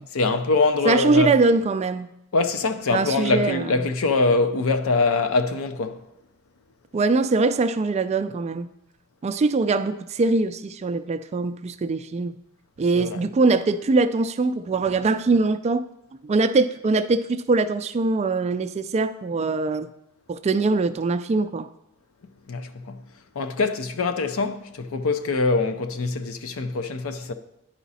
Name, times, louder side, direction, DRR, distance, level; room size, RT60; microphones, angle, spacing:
voice 1, 0.1-1.3 2.3-6.0 12.9-13.2 22.5-23.0 23.4-27.3, left 3 dB, 70° left, 0.6 m, -23 dB
voice 2, 0.8-2.1 2.9-3.8 6.9-8.7 9.2-12.4 12.8-15.8 16.2-19.9 20.3-21.7, right 3 dB, 30° right, 0.3 m, -22 dB
10.0 x 4.9 x 4.1 m
head